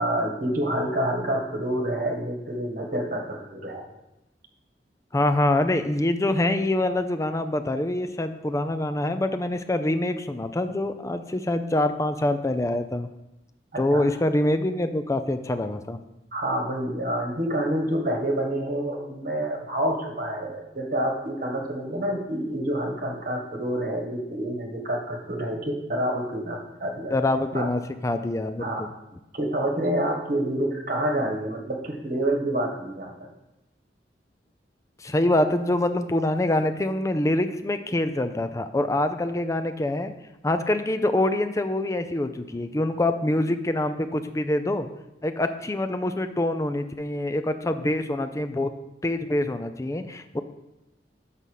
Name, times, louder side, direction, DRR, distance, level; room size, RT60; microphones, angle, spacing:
voice 1, 0.0-3.8 13.7-14.0 16.3-27.1 27.5-27.7 28.6-28.8 29.3-33.1, right 1 dB, 50° right, 2 dB, 1.5 m, -28 dB
voice 2, 5.1-13.1 13.8-16.0 27.1-28.9 35.0-40.1 40.4-44.9 45.2-48.7 49.0-50.4, left 1 dB, 15° left, 9 dB, 0.4 m, -25 dB
5.7 x 5.3 x 6.4 m, 0.94 s
head